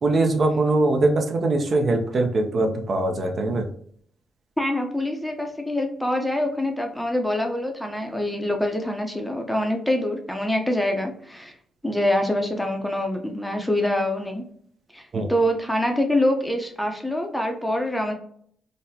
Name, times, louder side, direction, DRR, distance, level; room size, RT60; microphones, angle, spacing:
voice 1, 0.0-3.7 15.1-15.3, right 2 dB, 45° right, 4 dB, 0.5 m, -22 dB
voice 2, 4.6-11.5 11.8-14.4 14.9-18.1, left 1 dB, 5° left, 3 dB, 0.5 m, -25 dB
3.9 x 2.1 x 2.7 m, 0.62 s
cardioid pair, 90°, 0 cm